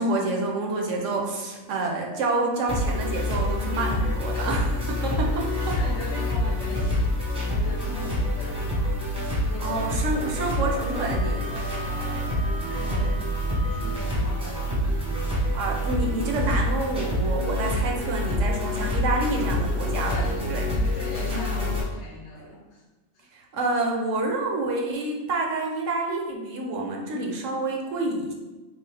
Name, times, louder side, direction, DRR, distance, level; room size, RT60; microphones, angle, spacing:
voice 1, 0.0-4.7 5.0-5.8 9.6-11.4 12.8-13.1 15.3-20.7 21.3-21.7 23.3-28.3, right 2 dB, 70° right, 0 dB, 0.9 m, -28 dB
sound 1, 2.7-21.8, left 1 dB, 5° right, 0.7 m, -26 dB
voice 2, 4.1-9.9 10.7-13.2 13.7-15.3 18.6-18.7 20.1-22.8 23.1-23.3, left 3 dB, 65° left, -1 dB, 0.7 m, -41 dB
Wind instrument woodwind instrument, 9.6-14.1, equal, 45° left, 1.0 m, -41 dB
3.7 x 2.7 x 3.3 m, 1.1 s
omnidirectional pair, 1.5 m